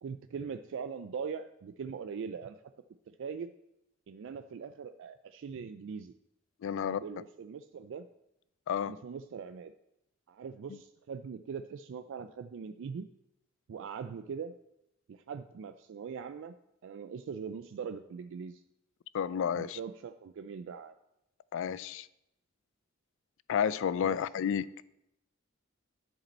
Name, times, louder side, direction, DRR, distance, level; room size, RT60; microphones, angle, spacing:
voice 1, 0.0-2.6 3.1-3.5 4.1-6.1 6.8-8.1 8.8-9.7 10.3-13.1 13.7-14.5 15.1-16.5 16.8-18.6 19.6-20.9 24.0-24.2, right 6 dB, 65° right, 0.3 m, -41 dB
voice 2, 6.6-7.0 8.7-8.9 19.1-19.8 21.5-22.1 23.5-24.9, left 8 dB, 65° left, 0.3 m, -31 dB
10.5 x 5.1 x 4.2 m
head